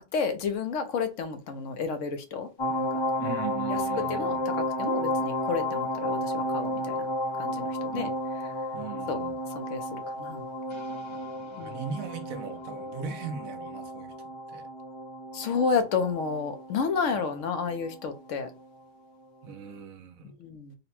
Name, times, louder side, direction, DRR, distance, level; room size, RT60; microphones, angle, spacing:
voice 1, 0.0-2.9 3.7-3.8 4.1-7.1 7.4-8.1 9.1-9.2 9.5-10.4 11.6-11.8 15.3-18.5 20.4-20.8, left 5 dB, 70° left, 1.0 m, -31 dB
sound 1, 2.6-18.2 18.5-18.6, left 1 dB, 40° left, 0.4 m, -32 dB
voice 2, 3.2-4.4 7.9-8.1 8.7-9.4 11.1-14.1 14.5-14.7 17.1-17.2 19.4-20.4, right 6 dB, 80° right, 1.2 m, -39 dB
4.0 x 2.1 x 4.2 m
omnidirectional pair, 1.4 m